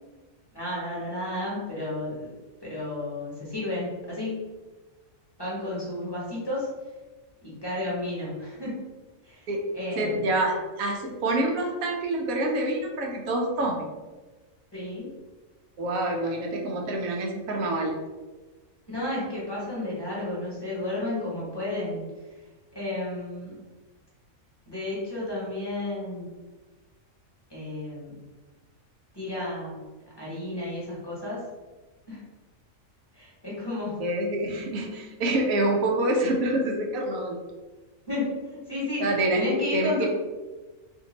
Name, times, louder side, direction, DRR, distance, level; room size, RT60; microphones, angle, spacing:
voice 1, 0.5-2.3 2.6-4.4 5.4-6.7 7.4-8.8 9.2-9.5 9.7-10.3 14.7-15.0 18.9-22.1 22.7-23.6 24.7-26.3 27.5-28.1 29.1-29.8 30.2-31.4 32.1-32.2 33.1-34.0 38.1-40.1, left 1 dB, 20° left, -7 dB, 1.1 m, -32 dB
voice 2, 10.0-13.9 15.8-18.0 34.0-37.4 39.0-40.1, right 1 dB, 80° right, 1 dB, 1.1 m, -26 dB
2.9 x 2.6 x 3.9 m, 1.2 s
omnidirectional pair, 1.4 m